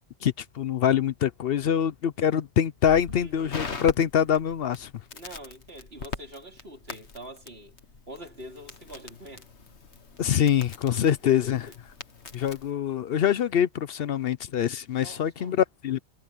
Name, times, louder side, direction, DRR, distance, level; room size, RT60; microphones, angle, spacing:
voice 1, 0.2-4.9 10.2-11.6 12.3-16.0, left 9 dB, 65° left, 0.8 m, -24 dB
Crackle, 2.8-12.7, left 5 dB, 80° left, 1.9 m, -42 dB
voice 2, 3.1-3.7 5.1-7.7 8.1-9.5 11.0-11.7 14.9-15.6, equal, 65° right, 4.0 m, -45 dB
omnidirectional pair, 1.1 m